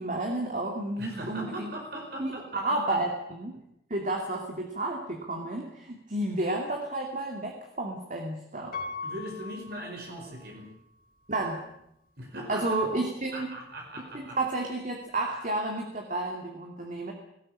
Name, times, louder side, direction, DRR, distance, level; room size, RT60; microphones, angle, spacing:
voice 1, 0.0-1.7 2.2-3.6 3.9-8.7 11.3-11.7 12.5-13.5 14.1-17.1, right 2 dB, 45° right, 2 dB, 2.5 m, -31 dB
voice 2, 1.0-3.0 9.0-10.7 12.2-12.6 13.3-14.4, right 1 dB, 60° right, 1 dB, 5.0 m, -39 dB
Piano, 8.7-10.7 11.3-11.4, left 4 dB, 55° left, 3.0 m, -40 dB
19.5 x 17.5 x 8.7 m, 0.77 s
head